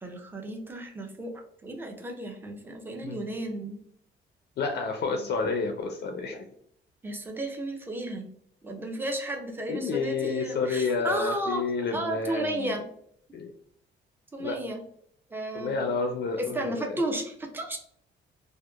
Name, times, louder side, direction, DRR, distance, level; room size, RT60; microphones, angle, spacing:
voice 1, 0.0-3.8 7.0-8.3 8.6-11.6 11.9-12.8 14.3-14.8 15.3-15.8 16.4-17.8, right 1 dB, 10° right, 2 dB, 0.5 m, -33 dB
voice 2, 4.6-6.4 9.7-12.7 13.3-13.5 14.4-14.6 15.5-16.9, left 4 dB, 55° left, 4 dB, 0.4 m, -30 dB
2.7 x 2.1 x 2.2 m, 0.66 s
cardioid pair, 90°, 20 cm